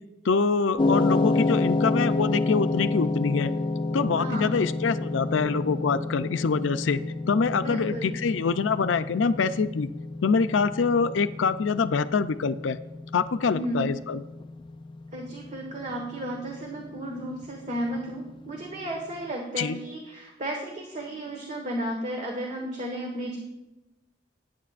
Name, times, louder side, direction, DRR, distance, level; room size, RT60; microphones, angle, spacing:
voice 1, 0.2-3.5 3.9-7.0 7.3-9.9 10.2-12.8 13.1-14.2 19.6-19.8, left 5 dB, 90° left, 12 dB, 0.5 m, -25 dB
sound 1, 0.8-19.0, left 2 dB, 25° left, 0.4 m, -30 dB
voice 2, 4.1-4.5 7.6-8.1 13.5-13.9 15.1-23.4, right 1 dB, 40° right, 1 dB, 1.4 m, -33 dB
20.5 x 9.4 x 2.5 m, 1.0 s
head